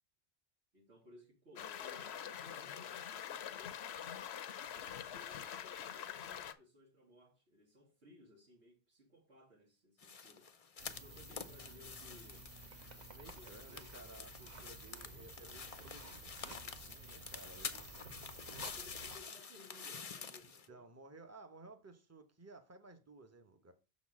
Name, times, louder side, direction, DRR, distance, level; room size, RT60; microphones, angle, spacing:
voice 1, 0.7-4.1 4.6-10.5 10.9-12.5 13.4-14.2 14.9-15.6 18.5-20.9, left 1 dB, 75° right, 2.0 m, -61 dB
sound 1, 1.6-6.5, left 9 dB, 70° left, 0.9 m, -45 dB
sound 2, 10.0-20.7, left 6 dB, 40° left, 0.6 m, -49 dB
sound 3, 10.8-19.2, right 2 dB, 40° right, 1.1 m, -53 dB
voice 2, 13.1-18.0 20.7-23.7, right 3 dB, 15° right, 0.9 m, -57 dB
6.4 x 4.1 x 6.2 m
omnidirectional pair, 1.1 m